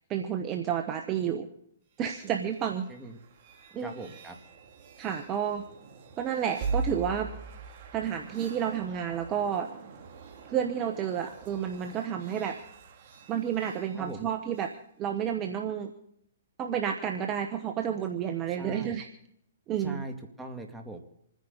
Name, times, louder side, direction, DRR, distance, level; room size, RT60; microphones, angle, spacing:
voice 1, 0.1-1.5 2.0-2.9 3.7-3.9 5.0-5.7 6.2-7.3 7.9-9.7 10.5-12.6 13.3-14.7 15.0-15.9 16.6-19.1 19.7-20.0, right 8 dB, 25° right, 5 dB, 1.2 m, -30 dB
sound 1, 1.9-14.8, right 4 dB, 45° right, 2.5 m, -42 dB
voice 2, 2.9-3.2 3.8-4.4 14.0-14.3 18.5-19.0 19.8-21.0, right 2 dB, 10° right, 2 dB, 2.2 m, -41 dB
27.5 x 10.5 x 4.0 m, 0.73 s
hypercardioid pair, 135°, 0 cm